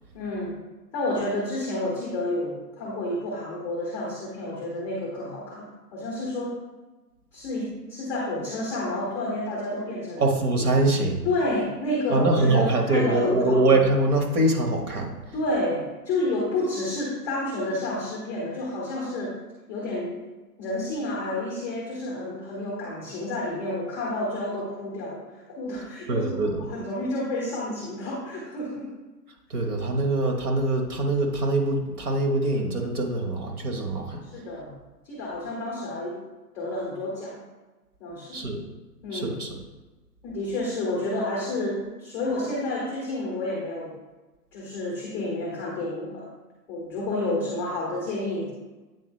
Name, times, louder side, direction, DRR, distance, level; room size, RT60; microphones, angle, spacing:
voice 1, 0.1-0.6 0.9-6.6 7.3-10.3 11.2-13.6 15.3-19.4 19.7-20.2 20.6-28.9 34.2-34.7 35.1-36.2 36.5-37.4 38.0-38.5 39.0-39.4 40.2-43.9 44.5-46.3 46.7-48.5, left 1 dB, 5° left, -4 dB, 0.5 m, -30 dB
voice 2, 10.2-11.2 12.1-15.1 26.1-26.7 29.5-34.2 38.3-38.6 39.1-39.6, right 2 dB, 65° right, 3 dB, 1.4 m, -23 dB
8.5 x 3.5 x 3.2 m, 1.2 s
hypercardioid pair, 130°, 49 cm